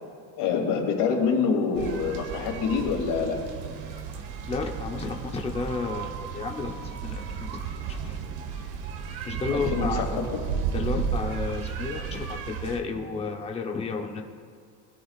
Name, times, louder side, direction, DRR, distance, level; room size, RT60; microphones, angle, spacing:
voice 1, 0.4-3.4 9.5-10.1, left 5 dB, 60° left, 0 dB, 3.0 m, -26 dB
sound 1, 1.8-12.8, right 7 dB, 75° right, 1.5 m, -33 dB
voice 2, 4.5-6.7 7.0-7.2 8.0-8.2 9.3-10.3 10.7-14.2, left 4 dB, 15° left, 2 dB, 0.8 m, -31 dB
21.5 x 13.0 x 2.5 m, 2.2 s
cardioid pair, 155°, 46 cm